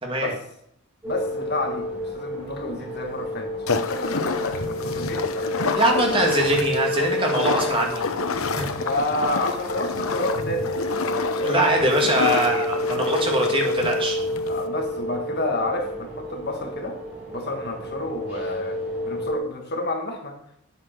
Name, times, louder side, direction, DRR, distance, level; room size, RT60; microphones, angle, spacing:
voice 1, 1.0-5.7 7.8-7.9 8.3-11.7 14.5-17.0 17.3-20.4, left 1 dB, 50° left, 3 dB, 1.8 m, -30 dB
sound 1, 1.0-19.4, left 1 dB, 5° right, 5.8 m, -30 dB
sound 2, 3.7-14.7, left 4 dB, 75° left, 0.8 m, -29 dB
voice 2, 5.8-8.1 8.5-8.6 11.4-14.2, right 1 dB, 25° right, 0 dB, 2.4 m, -22 dB
9.5 x 8.5 x 6.1 m, 0.75 s
head